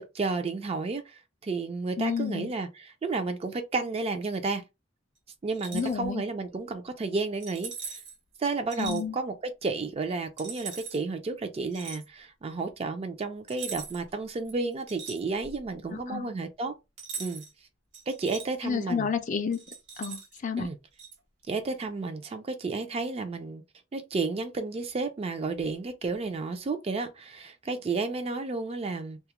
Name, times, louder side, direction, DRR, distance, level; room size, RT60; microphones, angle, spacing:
voice 1, 0.0-4.6 5.4-8.0 8.4-16.7 17.2-17.4 18.1-19.1 20.6-20.8 21.5-23.6 23.9-29.2, right 3 dB, 30° right, 0.4 m, -32 dB
voice 2, 2.0-2.5 5.7-6.2 8.8-9.2 15.9-16.3 18.6-19.6 20.0-20.7, left 6 dB, 40° left, 0.4 m, -30 dB
sound 1, 5.5-5.9 7.4-8.2 8.7-9.0 10.4-11.0 11.7-12.0 13.5-14.1 14.4-15.6 17.0-17.5 17.9-18.5 19.5-20.4 21.0-21.2, right 6 dB, 65° right, 1.0 m, -40 dB
2.3 x 2.0 x 2.8 m
head